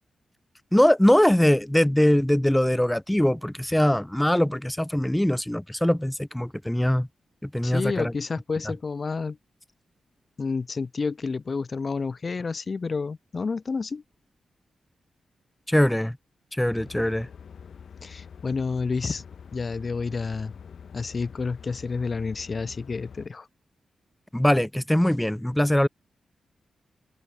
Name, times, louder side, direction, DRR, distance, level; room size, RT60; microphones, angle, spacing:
voice 1, 0.7-7.1 7.4-8.1 15.7-16.2 16.5-17.3 24.3-25.9, left 1 dB, 5° left, 1.4 m, -22 dB
voice 2, 7.6-9.4 10.4-14.0 18.0-19.2 19.5-20.5 20.9-23.5, left 4 dB, 45° left, 1.6 m, -29 dB
sound 1, 16.7-23.3, left 7 dB, 65° left, 3.6 m, -45 dB
cardioid pair, 65°, 0 cm